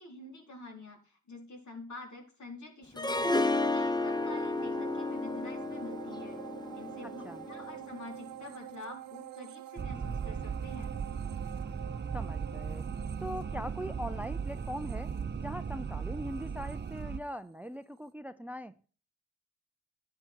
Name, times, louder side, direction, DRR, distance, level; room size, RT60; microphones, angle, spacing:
voice 1, 0.0-3.3 3.7-6.4 6.7-10.9, left 2 dB, 55° left, 4.5 m, -47 dB
Harp, 3.0-8.0, left 2 dB, 10° left, 0.9 m, -32 dB
sound 1, 4.0-17.7 18.1-18.2, right 13 dB, 80° right, 0.8 m, -48 dB
voice 2, 7.0-7.4 12.1-12.9 13.2-15.1 15.4-18.8, equal, 5° right, 0.6 m, -41 dB
sound 2, 9.8-17.2, right 6 dB, 30° right, 0.8 m, -37 dB
11.5 x 9.7 x 4.7 m
supercardioid pair, 50°, 33 cm